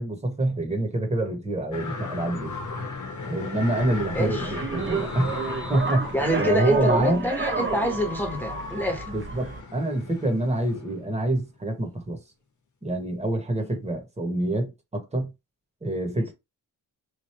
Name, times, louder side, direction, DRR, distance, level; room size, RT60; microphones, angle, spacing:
voice 1, 0.0-2.6 3.3-5.3 5.7-7.3 9.1-12.2 12.8-15.3 15.8-16.3, right 1 dB, 15° right, 1.4 m, -26 dB
sound 1, 1.7-11.6 12.0-12.1, left 4 dB, 50° left, 1.2 m, -37 dB
sound 2, 3.8-9.6, right 3 dB, 35° right, 0.9 m, -31 dB
voice 2, 4.1-4.5 6.1-9.1 16.2-16.3, equal, 5° left, 1.3 m, -27 dB
3.3 x 2.6 x 4.4 m
cardioid pair, 105°, 37 cm